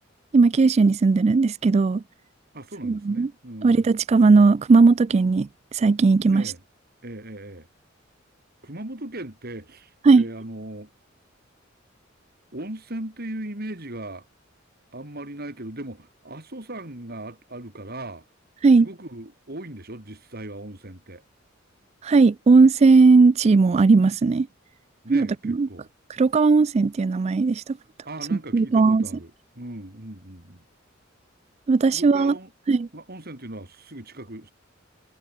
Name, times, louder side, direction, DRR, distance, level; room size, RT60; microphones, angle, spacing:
voice 1, 0.3-2.0 2.8-3.3 3.6-6.5 10.0-10.2 18.6-18.9 22.0-24.5 25.1-25.7 26.2-27.6 28.5-29.0 31.7-32.3 32.7-32.9, right 4 dB, 35° right, 0.3 m, -17 dB
voice 2, 2.5-3.9 6.3-6.6 7.0-7.7 8.6-10.9 12.5-14.3 14.9-18.3 18.7-21.2 25.0-25.9 28.0-30.6 31.9-32.5 32.9-34.5, right 1 dB, 50° right, 3.9 m, -38 dB
head